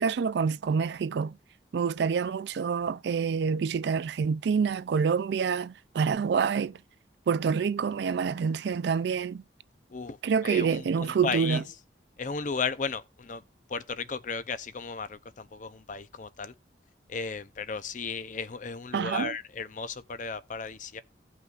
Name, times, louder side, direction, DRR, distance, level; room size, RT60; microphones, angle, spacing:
voice 1, 0.0-1.4 1.7-6.8 7.3-9.4 10.2-11.6 18.9-19.4, right 6 dB, 65° right, 0.3 m, -27 dB
voice 2, 10.4-11.6 12.2-13.4 13.7-16.5 17.1-21.0, left 5 dB, 45° left, 0.6 m, -35 dB
16.5 x 5.5 x 2.4 m
head